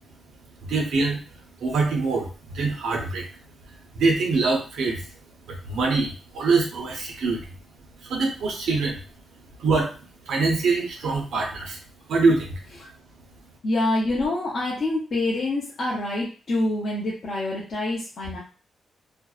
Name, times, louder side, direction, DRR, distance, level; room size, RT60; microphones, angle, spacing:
voice 1, 0.6-1.2 1.6-3.3 3.9-5.1 5.5-7.5 8.0-9.1 9.6-11.8 12.1-12.6, right 3 dB, 80° right, 0 dB, 0.7 m, -24 dB
voice 2, 13.6-18.4, left 2 dB, 40° left, -6 dB, 0.6 m, -26 dB
2.6 x 2.0 x 2.3 m, 0.35 s
wide cardioid pair, 175°, 0 cm